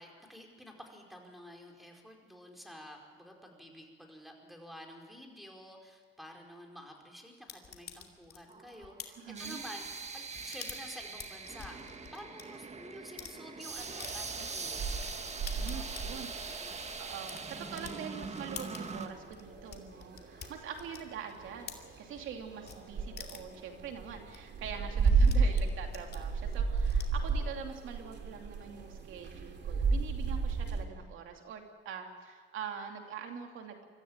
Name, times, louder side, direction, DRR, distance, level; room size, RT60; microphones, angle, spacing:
voice 1, 0.0-15.0 15.5-16.0 16.4-16.8, equal, ahead, 2 dB, 4.8 m, -50 dB
sound 1, 7.5-12.4 12.9-13.4 14.0-14.1 14.6-14.7 15.0-22.3 22.6-22.8 23.2-23.6 24.0-24.1 24.3-24.4 24.6-27.3, left 7 dB, 55° left, 2.5 m, -48 dB
sound 2, 8.5-19.1, right 4 dB, 35° right, 1.7 m, -42 dB
voice 2, 9.2-9.6 15.6-33.8, right 7 dB, 85° right, 4 dB, 2.8 m, -44 dB
sound 3, 13.8-30.8, right 4 dB, 60° right, 2.9 m, -33 dB
24.0 x 14.0 x 9.0 m, 1.5 s
cardioid pair, 90°, 20 cm